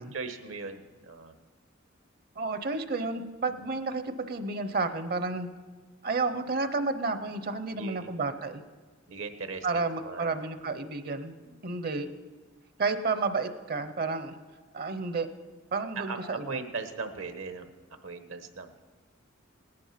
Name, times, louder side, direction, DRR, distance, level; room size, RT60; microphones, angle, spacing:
voice 1, 0.1-1.3 3.1-3.8 7.7-8.3 9.1-10.4 11.4-11.6 15.9-17.7 18.0-18.8, right 4 dB, 70° right, 8 dB, 1.1 m, -39 dB
voice 2, 2.4-5.5 6.0-8.6 9.6-11.3 11.6-12.1 12.8-14.4 14.7-15.3 15.7-16.6, right 3 dB, 50° right, 10 dB, 0.8 m, -31 dB
18.0 x 10.5 x 5.8 m, 1.4 s
head